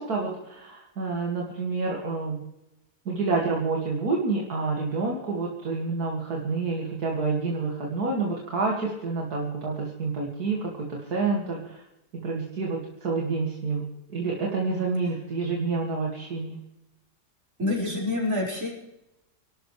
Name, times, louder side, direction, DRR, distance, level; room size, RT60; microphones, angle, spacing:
voice 1, 0.0-2.4 3.1-11.8 12.1-16.6, right 4 dB, 70° right, -2 dB, 2.8 m, -28 dB
voice 2, 17.6-18.7, left 2 dB, 50° right, -4 dB, 5.8 m, -27 dB
28.0 x 12.5 x 3.4 m, 0.91 s
omnidirectional pair, 1.7 m